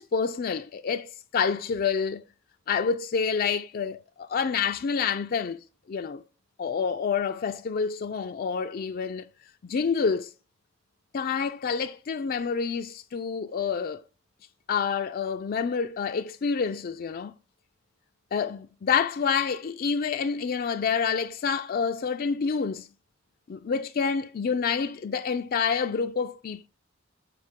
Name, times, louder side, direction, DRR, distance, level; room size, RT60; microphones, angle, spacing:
voice 1, 0.0-2.2 2.7-6.2 6.6-9.2 9.6-10.3 11.1-14.0 14.7-17.3 18.3-22.9 23.5-26.7, left 6 dB, 50° left, 0.4 m, -28 dB
7.7 x 5.2 x 3.6 m
head